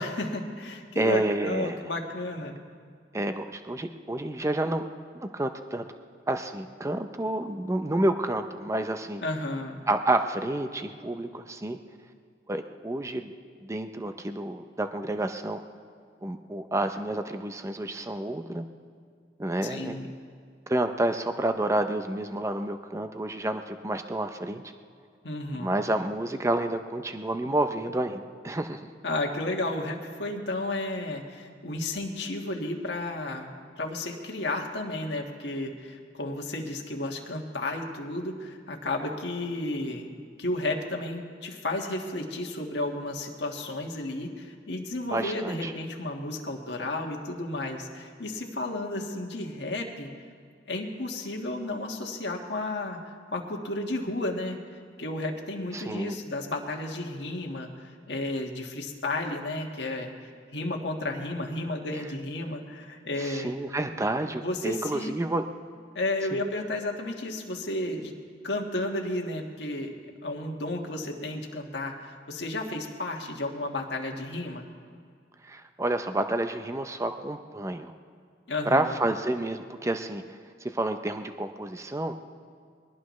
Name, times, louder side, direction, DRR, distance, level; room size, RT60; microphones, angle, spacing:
voice 1, 0.0-2.6 9.2-9.8 19.6-20.1 25.2-25.8 29.0-50.1 50.7-53.0 53.3-54.6 55.0-60.1 60.5-63.5 64.4-65.2 65.9-68.1 68.4-69.9 70.2-74.7 78.5-78.9, left 2 dB, 65° left, 1 dB, 1.6 m, -32 dB
voice 2, 1.0-1.9 3.1-4.8 5.1-5.8 6.3-9.2 9.9-11.8 12.5-13.3 13.6-15.6 16.2-18.7 19.4-20.1 20.7-24.6 25.6-28.9 45.1-45.7 55.7-56.2 63.2-65.4 66.3-66.4 75.4-77.9 78.7-82.1, right 1 dB, 15° right, 7 dB, 0.5 m, -29 dB
22.0 x 19.0 x 3.1 m, 2.1 s
head